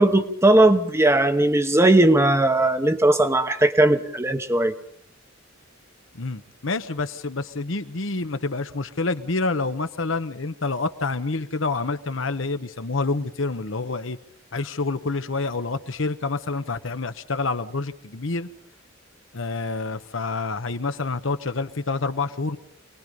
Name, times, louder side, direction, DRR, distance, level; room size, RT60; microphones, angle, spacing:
voice 1, 0.0-4.7, right 1 dB, 15° right, 9 dB, 1.1 m, -18 dB
voice 2, 6.1-14.2 14.5-18.5 19.3-22.6, left 3 dB, 70° left, 10 dB, 1.1 m, -27 dB
26.0 x 19.5 x 5.3 m, 0.63 s
head